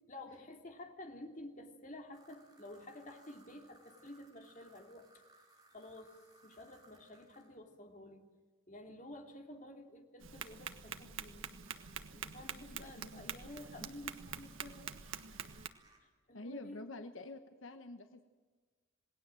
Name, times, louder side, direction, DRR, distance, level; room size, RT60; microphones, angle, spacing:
voice 1, 0.1-5.1 5.7-6.1 6.4-8.2 8.7-11.6 12.1-14.9 16.0-16.9, left 1 dB, 40° left, 3 dB, 3.0 m, -51 dB
sound 1, 2.1-7.6 11.3-16.0, right 2 dB, 20° right, 5.0 m, -66 dB
Tap, 10.2-15.7, right 7 dB, 85° right, 1.5 m, -46 dB
voice 2, 12.5-13.4 13.8-13.9 16.3-18.2, left 2 dB, 80° left, 8 dB, 1.2 m, -48 dB
27.5 x 19.5 x 7.7 m, 1.4 s
head